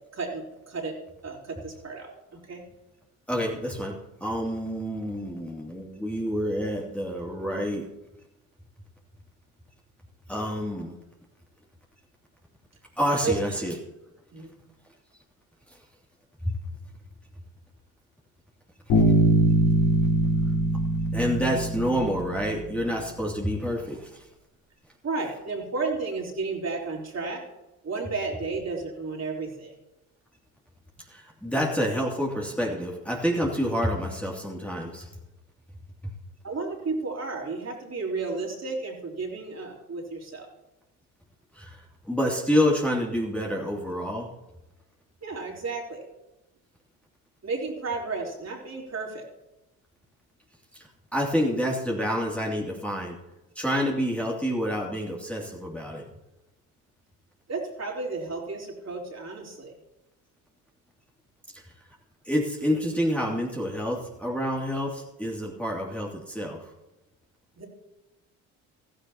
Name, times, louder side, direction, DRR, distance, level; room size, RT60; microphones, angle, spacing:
voice 1, 0.1-0.9 1.2-2.6 13.2-13.4 14.3-14.5 25.0-27.4 27.8-29.7 36.4-40.5 45.2-46.1 47.4-49.3 57.5-59.7 67.6-67.7, right 3 dB, 35° right, -1 dB, 3.7 m, -32 dB
voice 2, 3.3-7.9 10.3-11.0 13.0-13.7 16.5-16.6 18.9-19.0 21.1-24.2 31.1-35.1 41.5-44.3 50.7-50.9 51.1-53.2 53.6-56.1 61.5-61.6 62.2-66.7, equal, 5° left, -3 dB, 2.7 m, -28 dB
Bass guitar, 18.9-22.6, right 2 dB, 55° left, 4.5 m, -22 dB
15.5 x 14.5 x 2.9 m, 0.98 s
hypercardioid pair, 55°, 45 cm